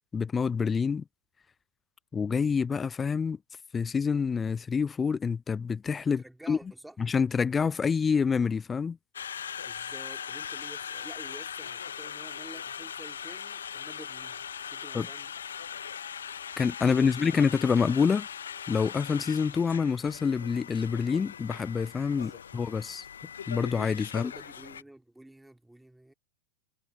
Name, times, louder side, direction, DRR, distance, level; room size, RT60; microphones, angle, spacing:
voice 1, 0.1-1.0 2.1-3.4 3.7-6.6 7.0-9.0 14.9-15.1 16.6-18.3 18.7-23.0 23.5-24.3, left 6 dB, 15° left, 0.3 m, -27 dB
voice 2, 6.1-7.0 9.6-14.4 14.7-15.3 16.8-17.5 22.1-22.4 24.1-26.1, right 1 dB, 5° right, 3.3 m, -50 dB
Conversation, 9.1-24.8, left 8 dB, 65° left, 1.1 m, -40 dB
figure-of-eight pair, 90°, 0 cm